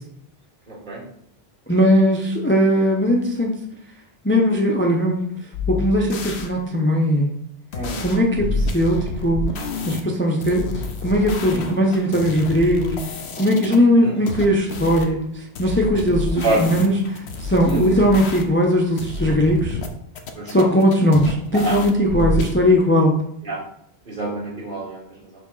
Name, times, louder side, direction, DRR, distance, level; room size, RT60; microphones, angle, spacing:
voice 1, 0.7-1.0 7.7-8.0 11.5-11.6 14.0-14.2 16.4-16.6 20.4-20.6 21.5-21.8 23.4-23.6 24.1-25.0, right 2 dB, 50° right, -5 dB, 2.2 m, -26 dB
voice 2, 1.7-3.5 4.2-5.3 5.7-7.3 8.0-9.4 9.8-10.7 11.0-13.0 13.4-19.8 20.5-23.2, equal, 15° left, 0 dB, 0.7 m, -19 dB
sound 1, 5.5-6.5 7.7-10.0 10.4-13.8 14.3-15.1 15.6-18.7 19.0-19.9 20.2-22.5, left 3 dB, 90° left, 1.0 m, -29 dB
5.2 x 3.5 x 5.5 m, 0.70 s
omnidirectional pair, 1.1 m